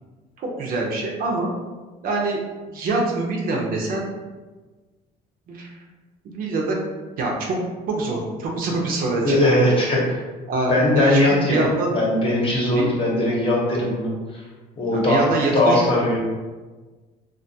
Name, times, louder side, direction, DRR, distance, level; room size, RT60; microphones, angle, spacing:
voice 1, 0.4-1.5 2.0-2.4 2.7-4.1 5.5-5.7 6.2-6.8 7.2-7.6 7.9-9.4 10.5-11.2 11.5-11.9 12.7-12.9 14.9-15.8, right 2 dB, 60° right, -1 dB, 0.5 m, -24 dB
voice 2, 9.2-10.2 10.7-11.6 11.9-14.4 14.8-15.2 15.5-16.2, left 1 dB, 30° left, -4 dB, 0.8 m, -20 dB
2.4 x 2.3 x 2.6 m, 1.3 s
cardioid pair, 110°, 17 cm